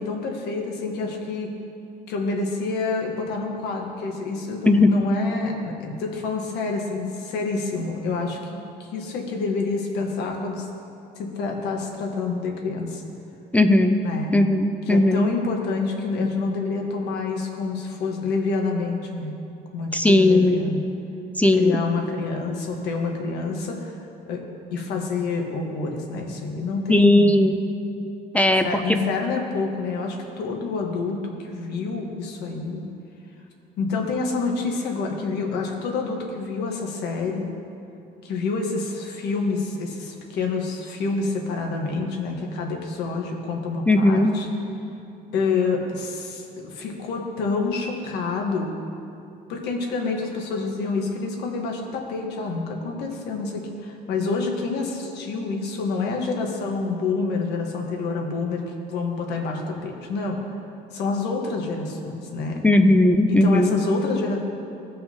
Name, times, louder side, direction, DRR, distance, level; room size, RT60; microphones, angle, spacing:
voice 1, 0.0-1.5 2.1-10.7 11.2-13.0 14.0-14.3 14.9-19.3 19.7-20.8 21.6-23.9 24.3-24.4 24.7-27.3 28.6-32.8 33.8-37.5 38.2-44.5 45.3-48.7 49.5-58.6 58.9-60.4 60.9-62.6 63.3-64.4, left 4 dB, 80° left, 1 dB, 1.3 m, -27 dB
voice 2, 13.5-14.0 14.3-15.3 19.9-20.6 21.4-21.8 26.9-27.6 28.3-29.0 43.9-44.3 62.6-63.8, left 1 dB, 10° left, 7 dB, 0.4 m, -17 dB
16.5 x 5.5 x 2.8 m, 2.6 s
cardioid pair, 110°, 17 cm